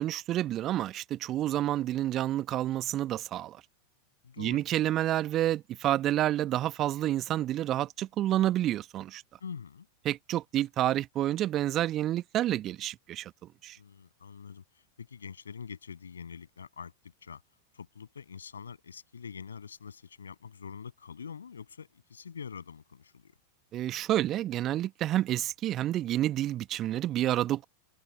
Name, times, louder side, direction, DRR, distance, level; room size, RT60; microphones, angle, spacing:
voice 1, 0.0-3.6 4.4-9.2 10.0-13.3 13.6-13.8 23.7-27.6, right 13 dB, 30° right, 1.1 m, -29 dB
voice 2, 4.2-4.6 9.4-9.9 13.8-16.9 17.2-17.4 17.7-23.3, left 6 dB, 70° left, 7.5 m, -45 dB
figure-of-eight pair, 90°, 0 cm